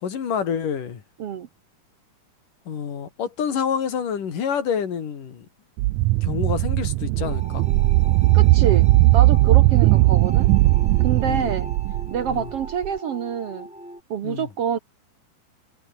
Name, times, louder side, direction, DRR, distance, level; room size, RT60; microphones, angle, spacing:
voice 1, 0.0-1.0 2.7-5.5 6.2-7.7 11.2-11.6 12.3-12.5 14.2-14.5, left 7 dB, 80° left, 4.5 m, -27 dB
sound 1, 5.8-12.9, right 19 dB, 80° right, 1.8 m, -18 dB
sound 2, 7.2-14.0, equal, ahead, 3.1 m, -40 dB
voice 2, 8.3-10.5 11.0-11.7 12.1-13.7 14.1-14.8, right 8 dB, 60° right, 1.9 m, -27 dB
omnidirectional pair, 3.7 m